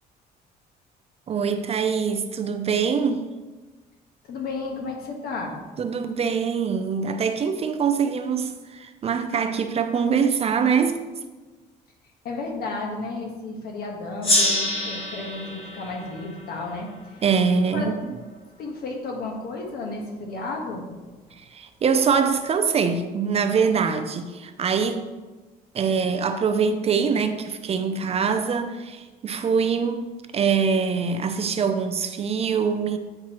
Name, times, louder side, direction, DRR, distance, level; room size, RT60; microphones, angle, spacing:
voice 1, 1.3-3.3 5.8-11.0 17.2-17.9 21.4-25.1 25.7-30.1 30.3-33.0, right 6 dB, 35° right, 0.5 m, -23 dB
voice 2, 4.2-5.6 12.2-17.2 17.6-18.0 18.6-20.9, left 3 dB, 65° left, 1.3 m, -33 dB
Gong, 14.2-17.4, left 1 dB, 35° left, 1.6 m, -26 dB
8.7 x 4.4 x 3.0 m
cardioid pair, 110°, 17 cm